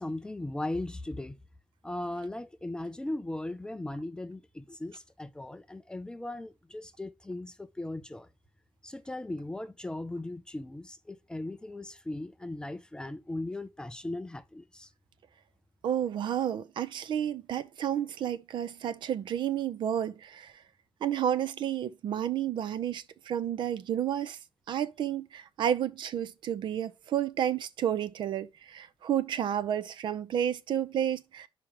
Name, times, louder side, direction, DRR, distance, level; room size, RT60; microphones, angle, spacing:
voice 1, 0.0-1.4 1.8-8.3 8.8-14.9, left 1 dB, 10° left, 0.4 m, -38 dB
voice 2, 15.8-20.5 21.0-24.4 24.7-31.5, right 10 dB, 60° right, 0.5 m, -31 dB
5.0 x 4.8 x 5.8 m
cardioid pair, 160°, 9 cm